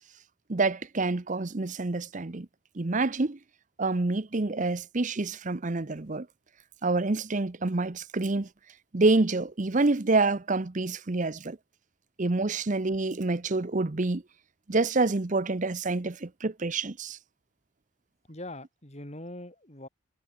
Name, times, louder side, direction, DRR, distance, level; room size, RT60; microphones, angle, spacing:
voice 1, 0.5-2.5 2.7-3.4 3.8-6.3 6.8-8.5 8.9-11.6 12.2-14.2 14.7-17.2, right 3 dB, 40° right, 0.8 m, -27 dB
voice 2, 18.3-19.9, left 1 dB, 35° left, 5.0 m, -42 dB
head